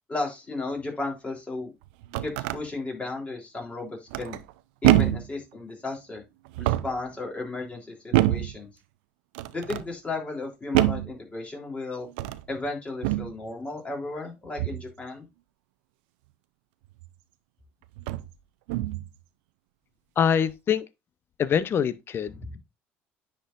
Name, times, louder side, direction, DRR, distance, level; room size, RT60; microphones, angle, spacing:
voice 1, 0.1-1.7 2.2-4.4 4.8-6.2 6.6-8.7 9.5-12.1 12.5-15.3 22.4-22.6, left 3 dB, 25° left, 3.2 m, -34 dB
sound 1, 1.8-2.6 4.1-4.5 4.8-5.3 6.5-7.0 8.1-8.6 9.3-9.9 10.7-11.1 12.1-12.5 13.0-13.3 14.6-14.9 17.0-17.1 18.0-18.3 18.7-19.1, right 16 dB, 90° right, 0.4 m, -25 dB
voice 2, 20.2-20.9 21.4-22.4, left 8 dB, 45° left, 0.6 m, -24 dB
10.0 x 4.4 x 2.5 m
supercardioid pair, 80°, 5 cm